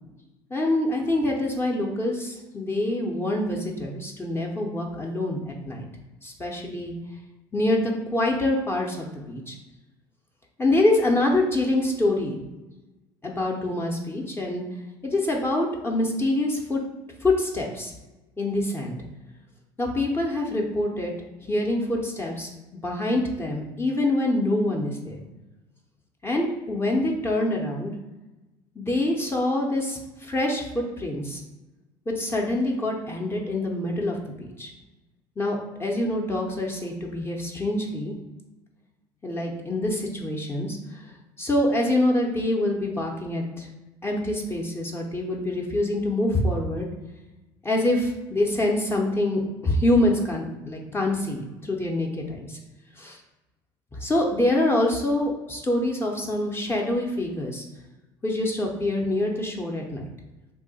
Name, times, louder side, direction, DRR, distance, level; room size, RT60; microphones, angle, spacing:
voice 1, 0.5-5.9 6.2-6.9 7.5-9.6 10.6-12.4 13.2-14.6 15.0-16.8 17.2-17.9 18.4-19.0 19.8-21.1 21.4-22.5 22.8-25.2 26.2-27.9 28.8-31.4 32.1-34.7 35.4-38.2 39.2-41.1 41.4-43.7 44.0-46.9 47.6-52.6 53.0-53.2 54.0-57.6 58.2-60.0, left 1 dB, 20° left, -1 dB, 0.6 m, -25 dB
2.7 x 2.1 x 4.0 m, 1.1 s
hypercardioid pair, 80°, 12 cm